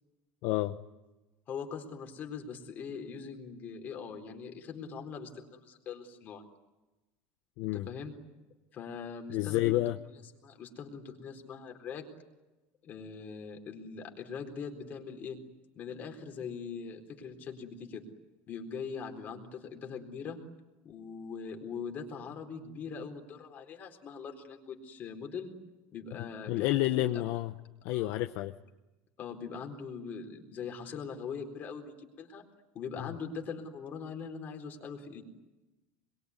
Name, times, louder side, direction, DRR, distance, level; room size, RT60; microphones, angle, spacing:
voice 1, 0.4-0.8 7.6-7.9 9.3-10.0 26.2-27.5 27.8-28.5 33.0-33.1, left 16 dB, 55° left, 7 dB, 1.0 m, -30 dB
voice 2, 1.5-6.4 7.6-8.1 8.7-9.8 10.4-12.1 12.8-15.4 15.8-18.0 18.5-20.4 20.8-25.5 25.9-27.2 27.9-28.2 29.2-32.4 32.7-35.2, left 6 dB, 30° left, 4 dB, 4.1 m, -42 dB
26.5 x 22.5 x 9.7 m, 1.1 s
cardioid pair, 165°, 6 cm